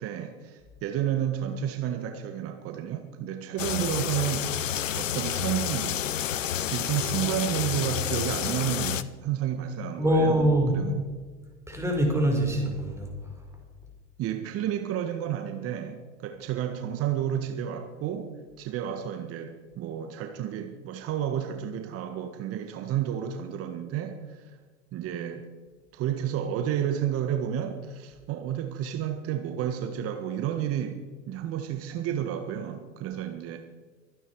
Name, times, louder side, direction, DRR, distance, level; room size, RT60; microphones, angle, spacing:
voice 1, 0.0-4.5 5.0-6.1 6.7-11.0 14.2-24.6 24.9-25.5 25.9-33.6, right 10 dB, 35° right, 1.6 m, -31 dB
sound 1, 3.6-9.0, left 10 dB, 80° left, 0.9 m, -29 dB
voice 2, 10.0-10.7 11.7-13.1, equal, 5° right, 5.1 m, -23 dB
24.0 x 9.9 x 4.8 m
hypercardioid pair, 95°, 38 cm